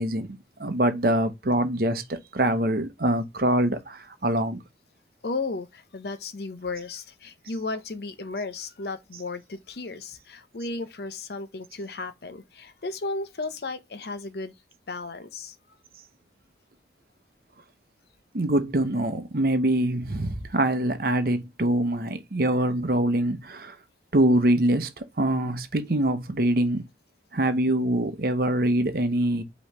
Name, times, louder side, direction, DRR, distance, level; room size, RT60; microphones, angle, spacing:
voice 1, 0.0-4.6 18.3-23.8 24.1-26.8 27.3-29.4, right 1 dB, 55° right, 0.8 m, -24 dB
voice 2, 5.2-14.5 14.9-15.8, left 3 dB, 60° left, 0.7 m, -34 dB
5.4 x 3.1 x 3.0 m
head